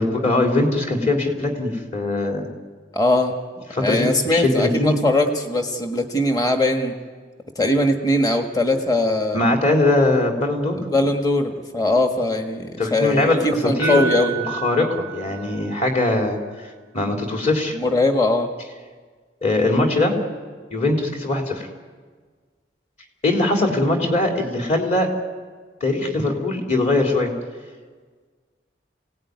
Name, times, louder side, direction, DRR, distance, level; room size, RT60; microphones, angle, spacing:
voice 1, 0.0-2.5 3.7-5.0 9.3-10.8 12.8-14.0 14.4-16.4 16.9-17.8 19.4-20.2 20.7-21.7 23.2-25.1 25.8-27.3, left 2 dB, 40° left, 1 dB, 3.6 m, -21 dB
voice 2, 2.9-3.3 3.8-7.0 7.6-9.4 10.7-14.3 17.7-18.5, left 2 dB, 20° left, 4 dB, 1.6 m, -20 dB
Piano, 13.8-15.9, right 7 dB, 55° left, 7.6 m, -29 dB
27.0 x 18.0 x 9.6 m, 1.5 s
head